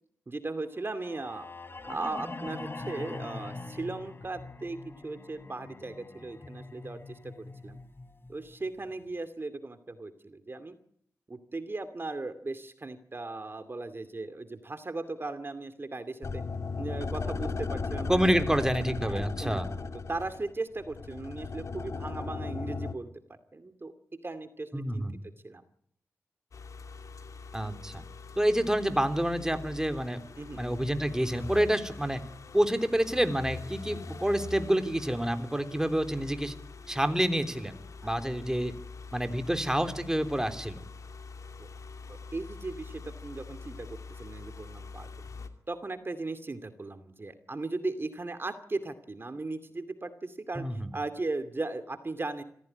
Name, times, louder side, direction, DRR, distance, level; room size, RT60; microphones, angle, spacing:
voice 1, 0.3-1.5 1.9-7.8 8.3-10.7 11.3-16.4 16.8-18.5 19.0-23.1 23.5-23.9 24.2-25.0 25.4-25.6 30.4-30.6 38.0-38.1 41.6-41.7 42.1-45.1 45.7-52.4, right 2 dB, 45° right, 9 dB, 2.4 m, -37 dB
sound 1, 0.8-8.9, left 3 dB, 45° left, 3.8 m, -43 dB
sound 2, 16.2-22.9, left 4 dB, 65° left, 1.8 m, -35 dB
voice 2, 18.1-19.7 24.7-25.2 27.5-28.0 28.4-30.2 30.5-32.2 32.5-36.6 36.9-37.8 38.0-38.7 39.1-40.8 50.6-50.9, right 1 dB, 10° right, 8 dB, 3.4 m, -28 dB
sound 3, 26.5-45.5, left 4 dB, 80° left, 2.8 m, -44 dB
25.5 x 16.0 x 9.8 m, 0.69 s
cardioid pair, 45°, 5 cm